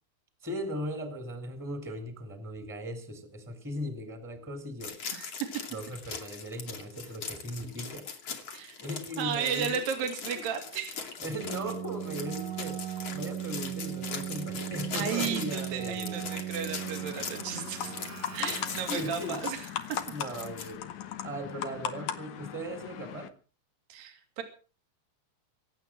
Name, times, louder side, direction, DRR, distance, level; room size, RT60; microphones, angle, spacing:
voice 1, 0.4-4.9 5.7-8.0 8.8-10.1 10.3-10.4 11.2-12.8 13.1-16.4 18.4-18.6 18.9-19.4 20.0-20.8 21.2-23.3, equal, 5° right, 7 dB, 2.5 m, -38 dB
sound 1, 4.8-20.7, left 6 dB, 40° left, 2.6 m, -41 dB
voice 2, 9.2-11.0 14.9-17.9 18.3-20.0 23.9-24.4, right 7 dB, 55° right, 5 dB, 4.3 m, -34 dB
Keyboard (musical), 11.4-19.5, right 11 dB, 90° right, 3.6 m, -38 dB
sound 2, 16.8-23.3, left 9 dB, 70° left, 1.7 m, -39 dB
24.5 x 9.0 x 6.2 m, 0.40 s
omnidirectional pair, 5.3 m